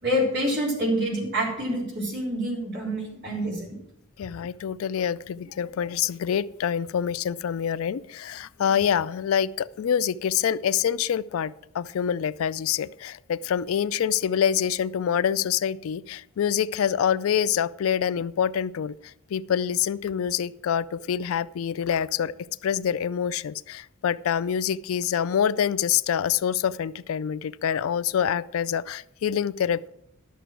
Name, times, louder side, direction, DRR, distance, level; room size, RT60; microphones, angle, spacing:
voice 1, 0.0-3.8, equal, 55° right, -2 dB, 3.7 m, -27 dB
voice 2, 4.2-19.0 19.3-22.3 22.6-29.8, left 8 dB, 75° left, 18 dB, 0.3 m, -26 dB
11.0 x 6.8 x 6.1 m, 0.82 s
head